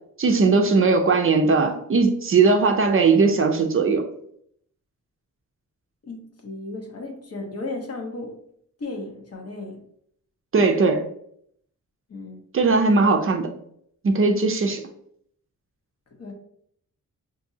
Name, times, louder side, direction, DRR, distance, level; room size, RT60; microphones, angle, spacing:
voice 1, 0.2-4.0 10.5-11.0 12.5-13.5 14.0-14.8, right 4 dB, 45° right, 4 dB, 0.4 m, -19 dB
voice 2, 6.0-8.3 8.8-9.8 12.1-12.4 16.2-16.3, left 2 dB, 50° left, 2 dB, 0.9 m, -34 dB
5.8 x 2.6 x 2.7 m, 0.69 s
wide cardioid pair, 170°, 32 cm